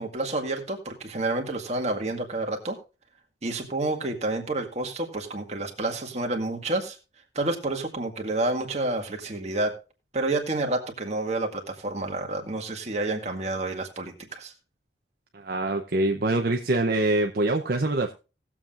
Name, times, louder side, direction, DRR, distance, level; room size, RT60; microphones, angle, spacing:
voice 1, 0.0-2.8 3.4-7.0 7.4-9.7 10.1-14.5, right 2 dB, 40° right, 2 dB, 1.9 m, -29 dB
voice 2, 15.3-18.1, right 2 dB, 55° right, 3 dB, 0.8 m, -24 dB
19.0 x 7.4 x 2.5 m, 0.31 s
head